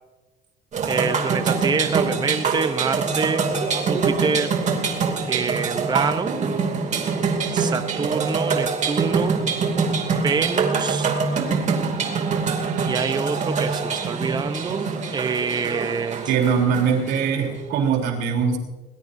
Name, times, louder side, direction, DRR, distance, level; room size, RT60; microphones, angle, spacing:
sound 1, 0.7-17.6, right 5 dB, 45° right, 2.6 m, -24 dB
voice 1, 0.9-3.5 3.9-4.5 5.3-6.3 7.5-9.4 10.1-11.1 12.8-16.3, right 5 dB, 25° right, 9 dB, 0.8 m, -26 dB
voice 2, 16.3-18.6, right 6 dB, 85° right, 2 dB, 3.5 m, -21 dB
21.0 x 20.0 x 2.7 m, 1.2 s
cardioid pair, 110°, 17 cm